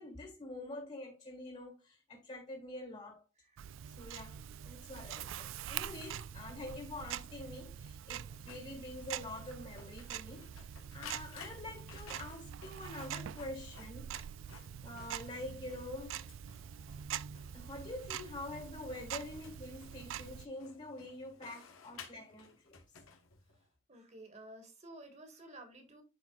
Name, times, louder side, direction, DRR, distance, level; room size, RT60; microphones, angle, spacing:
voice 1, 0.0-3.2 3.9-14.1 14.8-16.3 17.5-22.8, left 2 dB, 35° left, 1.8 m, -46 dB
Tick-tock, 3.6-20.5, right 9 dB, 70° right, 0.3 m, -45 dB
Printer, 8.3-23.7, left 5 dB, 90° left, 1.2 m, -57 dB
voice 2, 23.9-26.0, right 1 dB, 35° right, 1.6 m, -53 dB
11.5 x 4.2 x 2.4 m
head